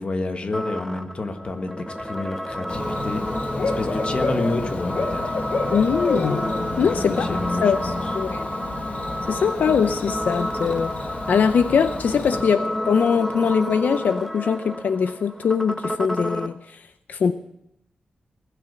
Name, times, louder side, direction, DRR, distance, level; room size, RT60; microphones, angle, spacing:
voice 1, 0.0-5.3 6.8-8.0, left 2 dB, 40° left, 7 dB, 1.5 m, -30 dB
sound 1, 0.5-16.5, equal, 5° left, 1.2 m, -30 dB
Bird / Cricket, 2.7-12.4, left 3 dB, 60° left, 1.6 m, -30 dB
voice 2, 5.7-6.4 6.8-7.3 7.6-8.5 9.3-10.9 11.3-17.3, left 6 dB, 80° left, 10 dB, 0.6 m, -22 dB
19.5 x 6.7 x 9.2 m, 0.80 s
wide cardioid pair, 115°, 3 cm